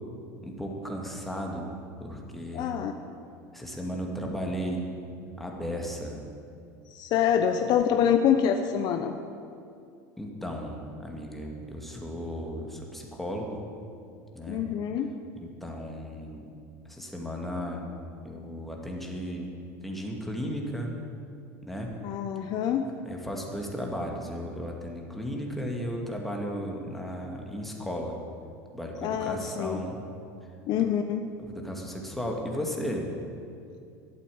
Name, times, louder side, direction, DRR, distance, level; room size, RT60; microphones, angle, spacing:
voice 1, 0.4-2.8 3.5-4.9 5.4-6.2 10.2-13.6 14.3-14.6 15.4-16.5 16.9-17.9 18.2-19.5 19.8-20.9 21.6-21.9 23.1-28.2 28.7-30.0 31.4-33.1, equal, ahead, 0 dB, 2.3 m, -35 dB
voice 2, 2.5-2.9 6.9-9.2 14.5-15.1 22.0-22.9 29.0-29.8 30.7-31.2, left 8 dB, 50° left, 7 dB, 0.8 m, -26 dB
12.0 x 8.4 x 8.7 m, 2.4 s
supercardioid pair, 105°, 9 cm